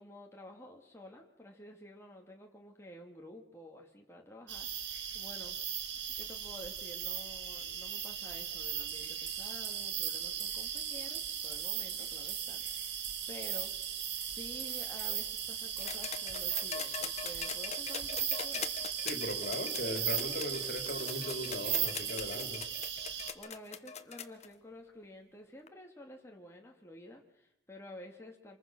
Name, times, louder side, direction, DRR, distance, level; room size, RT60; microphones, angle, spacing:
voice 1, 0.0-5.6 6.1-13.7 14.2-18.8 23.1-28.6, left 1 dB, 15° left, 1 dB, 2.5 m, -51 dB
sound 1, 4.5-23.3, right 9 dB, 80° right, 2.1 m, -37 dB
sound 2, 15.8-24.5 25.7-25.8, left 7 dB, 40° left, 1.3 m, -42 dB
voice 2, 19.0-22.6, left 1 dB, 60° left, 6 dB, 3.1 m, -38 dB
26.5 x 21.0 x 6.2 m, 0.79 s
head